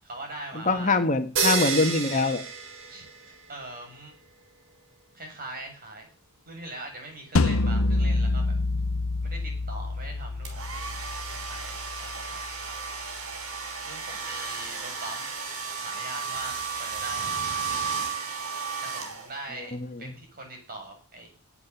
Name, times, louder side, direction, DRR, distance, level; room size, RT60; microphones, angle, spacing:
voice 1, 0.0-1.0 2.9-3.1 3.5-4.1 5.1-6.1 6.5-8.5 9.2-12.5 13.9-15.3 15.8-17.5 18.8-21.3, right 2 dB, 45° right, 3 dB, 7.5 m, -41 dB
voice 2, 0.7-2.4 19.7-20.0, left 3 dB, 35° left, 7 dB, 1.5 m, -24 dB
sound 1, 1.4-3.5, right 5 dB, 65° right, 3.4 m, -29 dB
sound 2, 7.4-12.4, left 2 dB, 70° left, 0.9 m, -27 dB
sound 3, 10.4-19.6, right 5 dB, 80° right, 4.2 m, -34 dB
18.0 x 8.8 x 7.3 m, 0.40 s
head